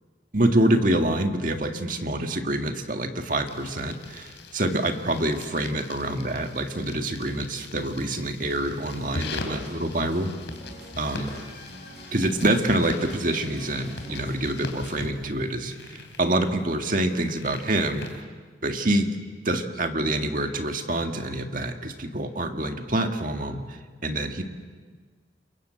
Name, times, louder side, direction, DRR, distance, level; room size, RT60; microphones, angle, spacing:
voice 1, 0.3-10.3 11.0-11.3 12.1-18.3 18.6-19.1 19.5-24.4, right 1 dB, 45° right, 5 dB, 1.9 m, -26 dB
sound 1, 3.5-18.2, left 2 dB, 70° left, 3.3 m, -41 dB
sound 2, 8.5-16.7, equal, 65° right, 7.8 m, -45 dB
28.5 x 22.5 x 7.7 m, 1.5 s
head